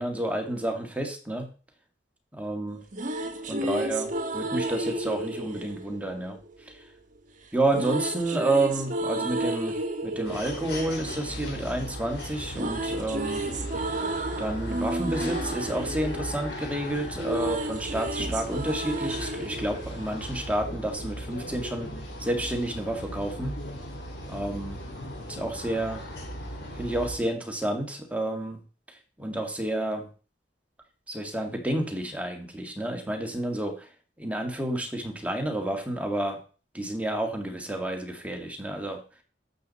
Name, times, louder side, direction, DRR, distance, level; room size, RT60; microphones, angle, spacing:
voice 1, 0.0-1.5 2.3-2.8 3.5-6.4 6.7-6.8 7.5-9.8 10.0-13.4 14.4-21.9 22.2-23.5 24.3-24.8 25.3-26.0 26.7-28.6 28.9-30.1 31.1-33.9 34.2-36.4 36.7-39.0, right 1 dB, 10° right, 3 dB, 1.8 m, -30 dB
sound 1, 2.7-6.8 7.7-11.9 12.2-20.7, right 1 dB, 45° right, 1.4 m, -32 dB
sound 2, 10.2-27.2, equal, 75° left, 5.0 m, -37 dB
12.0 x 7.9 x 4.1 m, 0.37 s
head